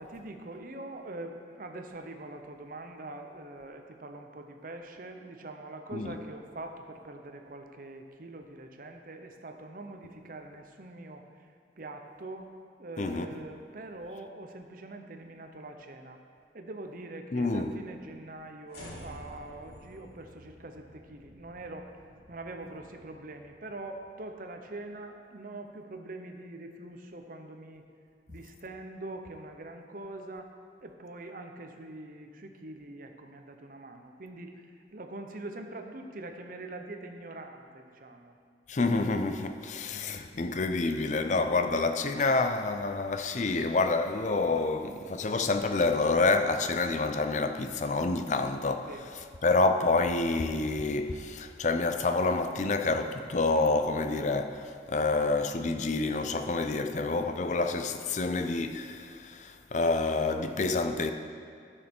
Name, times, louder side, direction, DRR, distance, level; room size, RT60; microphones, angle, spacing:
voice 1, 0.0-11.2 11.8-12.5 12.8-16.2 16.5-21.9 22.3-27.8 28.3-30.5 30.8-34.7 34.9-38.4 48.8-49.1, right 2 dB, 45° right, 0.7 m, -43 dB
voice 2, 17.3-17.7 38.7-48.9 49.4-61.1, left 3 dB, 40° left, 0.5 m, -28 dB
sound 1, 18.7-25.0, equal, 55° left, 1.9 m, -51 dB
11.5 x 6.5 x 4.4 m
head